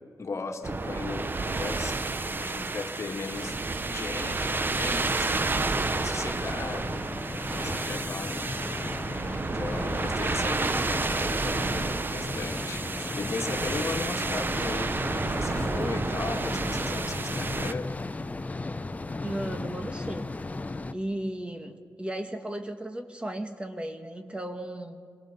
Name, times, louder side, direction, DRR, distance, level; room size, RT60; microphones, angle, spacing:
voice 1, 0.2-3.6 3.9-7.0 7.3-17.9, left 4 dB, 50° left, 4 dB, 1.8 m, -37 dB
sound 1, 0.6-17.7, right 3 dB, 30° right, 0.7 m, -30 dB
sound 2, 3.1-20.9, left 2 dB, 25° left, 0.8 m, -36 dB
voice 2, 19.2-20.4 20.9-25.0, right 1 dB, 15° right, 7 dB, 1.3 m, -35 dB
26.5 x 19.0 x 6.8 m, 2.2 s
cardioid pair, 80°, 6 cm